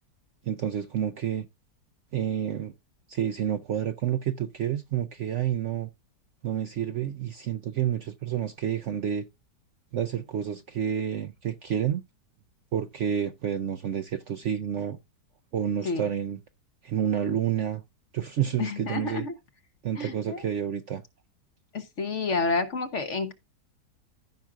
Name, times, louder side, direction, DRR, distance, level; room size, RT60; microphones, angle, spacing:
voice 1, 0.5-1.5 2.1-2.7 3.1-5.9 6.4-9.3 9.9-12.0 12.7-15.0 15.5-16.4 16.8-17.8 18.1-19.3 19.8-21.0, right 9 dB, 65° right, 0.8 m, -29 dB
voice 2, 18.6-19.3 20.0-20.4 21.7-23.3, left 4 dB, 50° left, 1.1 m, -29 dB
15.0 x 5.9 x 2.4 m
omnidirectional pair, 1.8 m